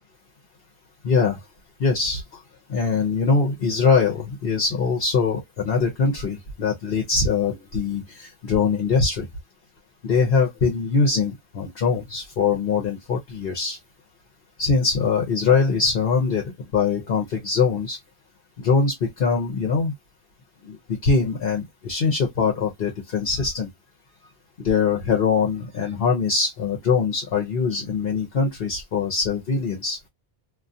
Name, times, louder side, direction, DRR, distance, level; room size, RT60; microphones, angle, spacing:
voice 1, 1.0-1.4 1.8-2.4 2.7-9.3 10.0-13.8 14.6-18.0 18.6-19.9 20.6-23.7 24.6-30.0, left 5 dB, 60° left, 1.0 m, -22 dB
2.6 x 2.4 x 2.6 m
omnidirectional pair, 1.1 m